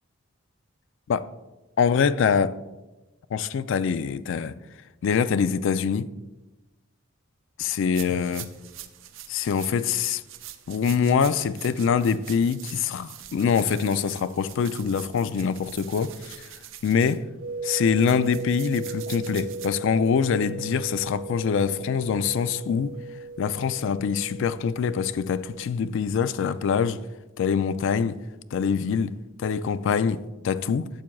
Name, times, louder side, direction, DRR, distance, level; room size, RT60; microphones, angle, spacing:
voice 1, 1.8-2.6 3.3-4.6 5.0-6.1 7.6-8.5 9.3-10.2 10.7-16.5 16.8-17.3 17.6-23.0 23.4-27.0 27.4-28.2 28.5-30.9, left 6 dB, 60° left, 0.3 m, -24 dB
sound 1, 7.9-19.7, right 12 dB, 60° right, 0.5 m, -44 dB
sound 2, 17.4-25.7, right 3 dB, 85° right, 1.4 m, -37 dB
12.0 x 7.2 x 2.3 m
head